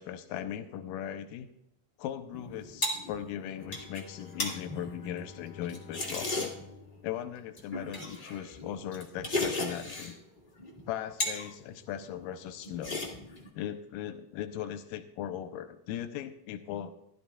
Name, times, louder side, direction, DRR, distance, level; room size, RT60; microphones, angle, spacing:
voice 1, 0.0-1.5 2.0-6.5 7.0-10.2 10.9-13.1 13.6-16.9, left 10 dB, 90° left, 9 dB, 2.3 m, -38 dB
sound 1, 2.3-6.8 7.6-10.2 10.6-11.5 11.8-12.3 12.6-13.5, left 2 dB, 40° left, 0.6 m, -36 dB
Bowed string instrument, 3.4-8.4, left 5 dB, 70° left, 1.8 m, -53 dB
15.5 x 11.5 x 2.3 m, 0.80 s
omnidirectional pair, 3.9 m